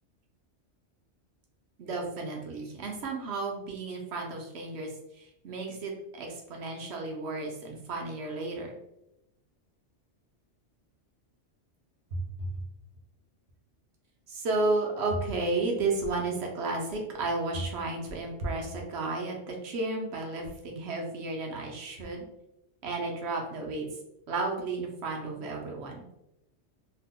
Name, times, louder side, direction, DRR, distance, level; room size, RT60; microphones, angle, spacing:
voice 1, 1.8-8.8 14.3-22.2 22.8-23.9 24.3-26.1, right 3 dB, 70° right, 1 dB, 0.9 m, -33 dB
2.8 x 2.0 x 3.5 m, 0.86 s
omnidirectional pair, 1.2 m